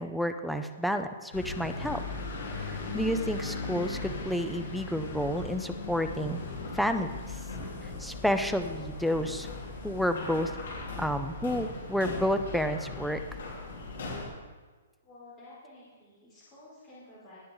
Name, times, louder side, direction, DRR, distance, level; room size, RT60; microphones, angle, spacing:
voice 1, 0.0-2.0 2.6-6.4 6.7-7.4 7.8-9.5 9.8-10.5 11.0-13.2, equal, ahead, 8 dB, 0.4 m, -30 dB
sound 1, 1.3-14.3, left 3 dB, 75° left, 3.8 m, -38 dB
voice 2, 15.0-17.4, left 2 dB, 15° left, -9 dB, 4.1 m, -52 dB
17.5 x 7.8 x 3.8 m, 1.4 s
hypercardioid pair, 175°, 0 cm